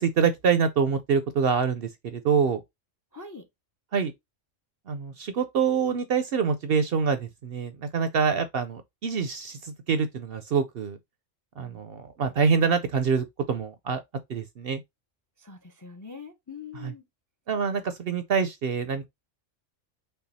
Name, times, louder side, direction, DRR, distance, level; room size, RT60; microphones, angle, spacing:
voice 1, 0.0-2.6 3.9-4.1 4.9-11.0 11.6-14.0 14.3-14.8 16.7-16.9 17.5-19.1, right 6 dB, 60° right, 0.7 m, -26 dB
voice 2, 3.1-3.4 11.6-11.8 15.4-17.0, left 5 dB, 25° left, 0.4 m, -43 dB
5.6 x 2.3 x 4.0 m
omnidirectional pair, 1.3 m